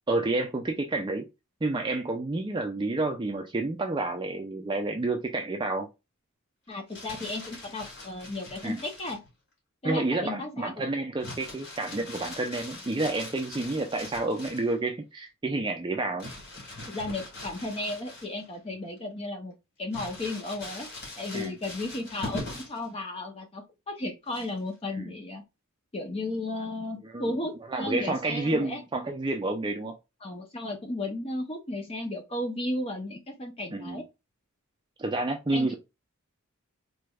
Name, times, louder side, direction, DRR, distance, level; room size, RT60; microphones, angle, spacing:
voice 1, 0.1-1.3 1.6-5.9 8.6-8.8 9.8-16.3 21.3-21.5 25.0-25.1 27.0-30.0 33.7-34.0 35.0-35.7, right 2 dB, 20° right, 0.4 m, -30 dB
Crumpling crinkling, 6.7-9.3 11.2-14.7 16.2-18.6 19.0-19.1 19.9-22.9 24.3-24.7, left 2 dB, 55° left, 2.1 m, -42 dB
voice 2, 6.7-9.2 9.8-10.7 16.9-20.9 21.2-25.4 25.9-28.8 30.2-34.0 35.5-35.8, left 2 dB, 25° left, 0.6 m, -34 dB
4.1 x 3.3 x 2.2 m
head